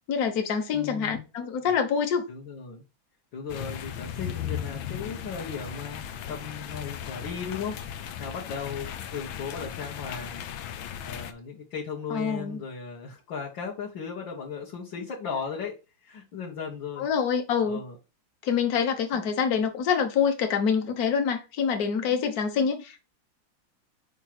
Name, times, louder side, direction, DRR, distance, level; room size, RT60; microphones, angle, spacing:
voice 1, 0.1-2.2 12.1-12.6 17.0-17.8 18.4-23.0, left 6 dB, 55° left, 1.5 m, -26 dB
voice 2, 0.7-1.3 2.3-2.8 3.3-10.5 10.7-15.7 16.0-17.1 17.7-18.0 19.1-19.2, left 6 dB, 70° left, 2.1 m, -36 dB
sound 1, 3.5-11.3, left 9 dB, 85° left, 1.5 m, -37 dB
5.0 x 4.5 x 5.9 m
omnidirectional pair, 2.2 m